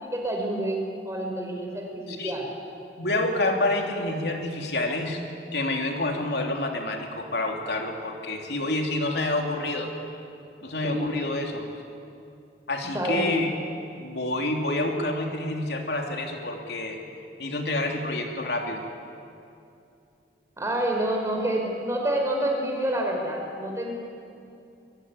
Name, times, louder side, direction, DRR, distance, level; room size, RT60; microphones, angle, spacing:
voice 1, 0.0-2.5 10.8-11.1 12.9-13.3 20.6-23.9, right 1 dB, 15° right, 1 dB, 4.7 m, -28 dB
voice 2, 3.0-5.2 5.5-9.9 10.6-11.6 12.7-13.5 14.0-17.0 17.4-18.8, left 2 dB, 70° left, 2 dB, 3.1 m, -28 dB
23.0 x 23.0 x 9.8 m, 2.6 s
head